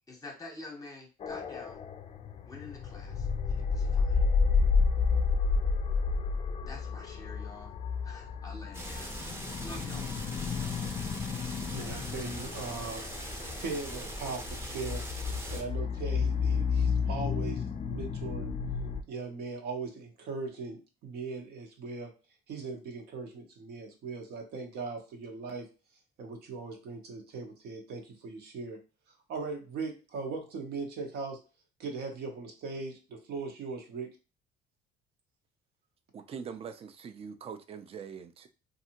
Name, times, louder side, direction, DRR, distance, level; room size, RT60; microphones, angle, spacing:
voice 1, 0.1-1.8 2.4-4.2 6.7-7.7 8.0-9.3 9.6-10.1, left 2 dB, 20° left, 0.8 m, -47 dB
sound 1, 1.2-19.0, left 5 dB, 35° left, 0.4 m, -31 dB
sound 2, 8.7-15.6, equal, 15° right, 0.8 m, -40 dB
voice 2, 11.7-13.0 13.6-15.1 15.5-18.5 19.1-22.1 22.5-25.7 26.2-28.8 29.3-31.4 31.8-34.1, right 4 dB, 70° right, 0.9 m, -39 dB
voice 3, 36.1-38.5, right 6 dB, 35° right, 0.4 m, -43 dB
2.6 x 2.5 x 2.8 m
cardioid pair, 110°, 17 cm